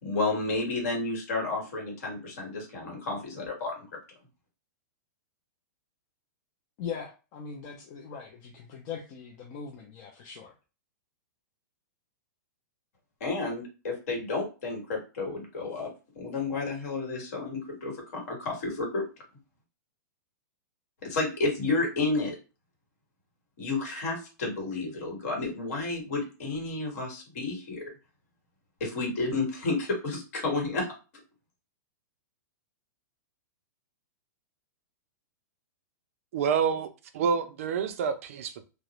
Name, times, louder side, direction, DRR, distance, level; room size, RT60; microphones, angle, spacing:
voice 1, 0.0-3.9 13.2-15.9 16.1-19.0 21.0-22.3 23.6-27.8 28.8-30.9, left 3 dB, 55° left, 1.4 m, -31 dB
voice 2, 6.8-10.5, left 6 dB, 25° left, 0.4 m, -40 dB
voice 3, 36.3-38.6, right 6 dB, 45° right, 0.3 m, -28 dB
2.4 x 2.0 x 2.9 m
supercardioid pair, 170°, 10 cm